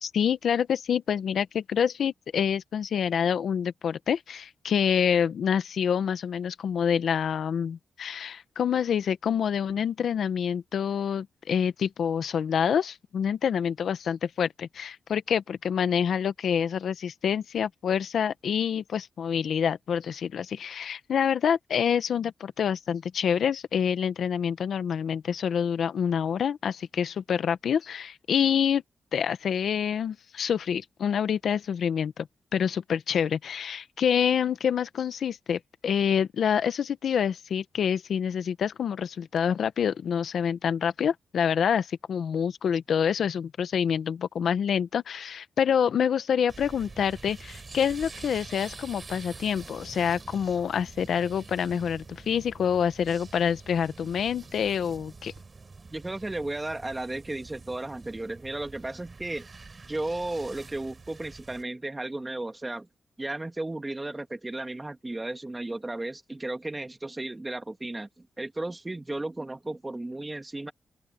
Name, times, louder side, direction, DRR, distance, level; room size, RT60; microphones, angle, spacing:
voice 1, 0.0-28.8 29.1-32.3 32.5-55.3, left 8 dB, 70° left, 0.9 m, -27 dB
sound 1, 46.5-61.6, right 4 dB, 30° right, 6.3 m, -46 dB
voice 2, 55.9-59.5 59.9-62.9 63.2-70.7, right 2 dB, 15° right, 1.8 m, -34 dB
open air
wide cardioid pair, 130°, 0 cm